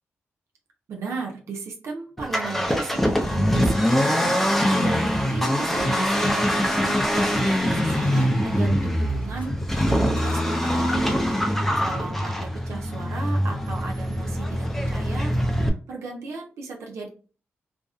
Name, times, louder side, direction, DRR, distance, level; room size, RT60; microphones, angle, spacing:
voice 1, 0.9-15.4 15.6-17.1, right 4 dB, 85° right, 0 dB, 0.6 m, -36 dB
Accelerating revving vroom, 2.2-15.7, equal, 5° left, 0.4 m, -23 dB
sound 1, 5.7-7.5 7.8-8.6 9.1-11.4 11.7-12.0, left 1 dB, 45° left, 1.1 m, -37 dB
2.5 x 2.1 x 2.4 m, 0.38 s
cardioid pair, 100°, 5 cm